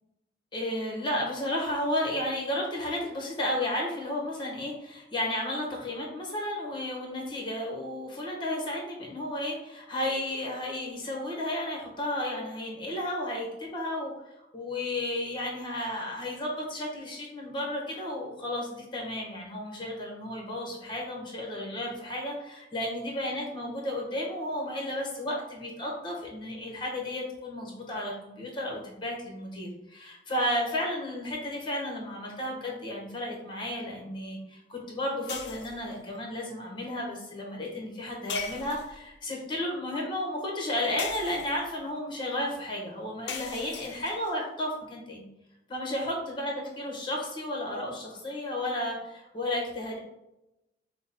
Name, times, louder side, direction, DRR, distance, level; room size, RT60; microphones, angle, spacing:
voice 1, 0.5-45.3 45.7-50.0, left 1 dB, 25° left, -1 dB, 1.1 m, -33 dB
sound 1, 35.3-35.9 38.3-39.1 41.0-41.8 43.3-44.3, left 8 dB, 75° left, 0.4 m, -39 dB
4.9 x 2.2 x 4.1 m, 0.91 s
head